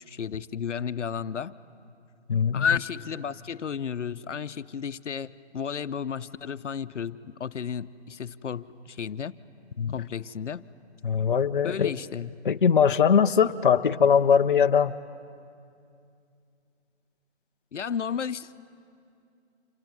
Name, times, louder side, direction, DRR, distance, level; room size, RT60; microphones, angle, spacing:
voice 1, 0.1-1.6 2.5-9.3 9.9-10.6 11.6-12.3 17.7-18.5, left 7 dB, 80° left, 13 dB, 0.8 m, -32 dB
voice 2, 2.3-2.6 9.8-9.9 11.0-11.9 12.4-14.9, left 7 dB, 45° left, 7 dB, 0.5 m, -21 dB
27.0 x 21.0 x 9.3 m, 2.4 s
hypercardioid pair, 165°, 35 cm